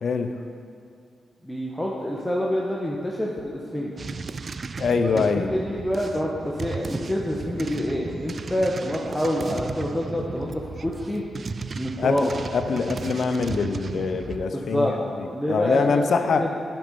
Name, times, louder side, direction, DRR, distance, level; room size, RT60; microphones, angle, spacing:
voice 1, 0.0-0.3 4.8-5.5 12.0-14.9 15.2-16.5, left 5 dB, 65° left, 8 dB, 0.6 m, -24 dB
voice 2, 1.4-3.9 5.1-11.2 11.8-12.3 14.5-15.0 15.3-16.5, equal, 10° left, -4 dB, 1.2 m, -27 dB
sound 1, 4.0-14.5, right 4 dB, 50° right, 0.3 m, -35 dB
10.5 x 5.4 x 5.3 m, 2.5 s
supercardioid pair, 50°, 0 cm